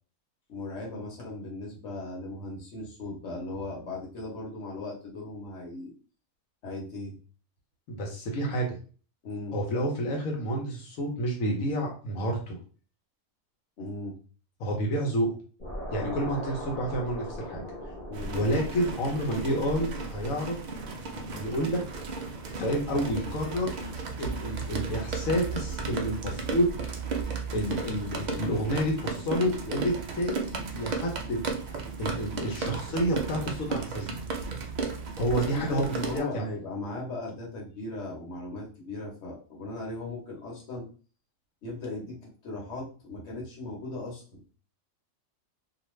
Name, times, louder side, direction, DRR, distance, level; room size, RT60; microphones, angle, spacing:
voice 1, 0.5-5.9 6.6-7.2 9.2-9.6 13.8-14.2 16.0-16.3 18.1-18.4 35.5-40.8 41.6-44.4, left 2 dB, 60° left, -3 dB, 1.3 m, -37 dB
voice 2, 7.9-8.8 9.5-12.6 14.6-15.3 15.9-17.6 18.3-20.6 21.0-21.8 22.6-23.8 24.2-26.7 27.5-31.4 32.0-34.1 35.2-36.4, equal, 90° left, -1 dB, 1.2 m, -29 dB
sound 1, 15.6-20.9, equal, 40° left, 1.2 m, -40 dB
sound 2, 18.1-36.2, right 4 dB, 85° right, 0.3 m, -34 dB
2.5 x 2.5 x 3.1 m, 0.38 s
omnidirectional pair, 1.3 m